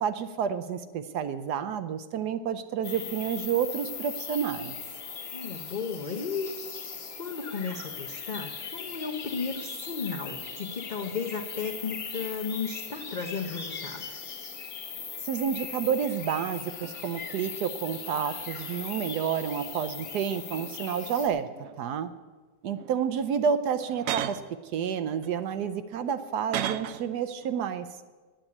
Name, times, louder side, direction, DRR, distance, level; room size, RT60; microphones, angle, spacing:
voice 1, 0.0-4.8 15.2-21.5 21.8-22.1 22.6-24.4 24.7-27.9, right 7 dB, 70° right, 11 dB, 1.0 m, -30 dB
sound 1, 2.8-21.3, left 6 dB, 50° left, 1.7 m, -39 dB
voice 2, 5.3-6.5 7.2-14.2, left 5 dB, 85° left, 2 dB, 0.4 m, -34 dB
sound 2, 16.2-16.3 16.8-17.3 18.1-19.7 20.0-21.0 21.4-22.0 22.7-23.0 23.7-24.6 25.2-27.1 27.4-27.7, right 10 dB, 85° right, 0.7 m, -38 dB
9.4 x 8.9 x 8.5 m, 1.4 s
omnidirectional pair, 2.0 m